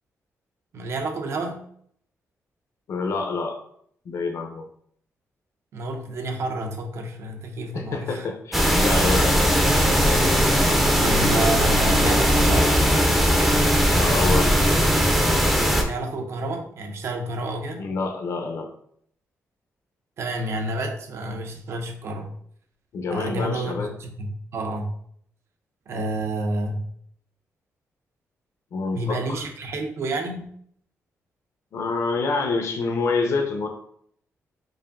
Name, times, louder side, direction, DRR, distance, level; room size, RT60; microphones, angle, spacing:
voice 1, 0.7-1.6 5.7-8.3 11.0-12.7 15.8-17.8 20.2-22.3 23.1-24.9 25.9-26.9 28.9-30.5, right 2 dB, 55° right, 4 dB, 0.6 m, -29 dB
voice 2, 2.9-3.6 4.0-4.7 7.7-9.3 13.9-14.7 17.8-18.7 22.9-23.9 28.7-29.4 31.7-33.7, left 4 dB, 60° left, 3 dB, 0.6 m, -27 dB
sound 1, 8.5-15.8, equal, 5° right, 0.5 m, -19 dB
4.8 x 2.6 x 2.5 m, 0.66 s
wide cardioid pair, 160°, 5 cm